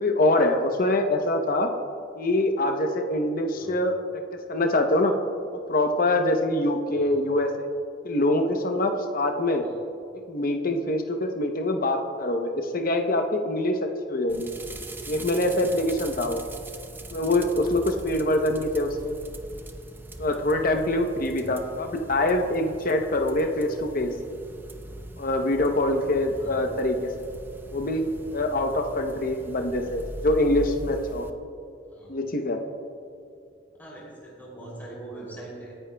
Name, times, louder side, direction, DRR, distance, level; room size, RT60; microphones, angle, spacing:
voice 1, 0.0-1.7 2.2-4.0 4.5-5.1 5.7-7.7 8.0-9.6 10.3-13.8 14.1-14.5 15.1-16.4 17.1-19.1 20.2-24.1 25.2-27.1 27.7-31.3 32.1-32.6, left 1 dB, 50° left, 4 dB, 0.8 m, -24 dB
sound 1, 14.3-31.3, right 1 dB, 10° right, 0.6 m, -41 dB
voice 2, 33.8-35.7, right 2 dB, 10° left, -5 dB, 2.9 m, -42 dB
25.5 x 10.0 x 2.3 m, 2.6 s
head